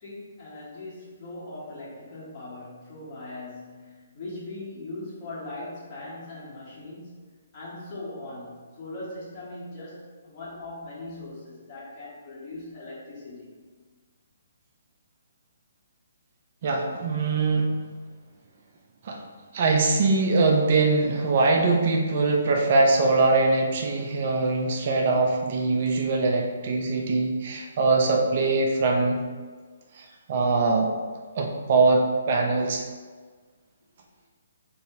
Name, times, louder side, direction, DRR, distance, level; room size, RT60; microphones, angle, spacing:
voice 1, 0.0-7.2 7.5-13.5 28.0-28.2, left 2 dB, 35° left, -8 dB, 1.3 m, -40 dB
voice 2, 16.6-17.7 19.0-19.2 19.5-29.2 30.0-30.9 31.4-32.8, right 3 dB, 50° right, 1 dB, 0.4 m, -22 dB
2.7 x 2.6 x 3.6 m, 1.5 s
figure-of-eight pair, 135°, 0 cm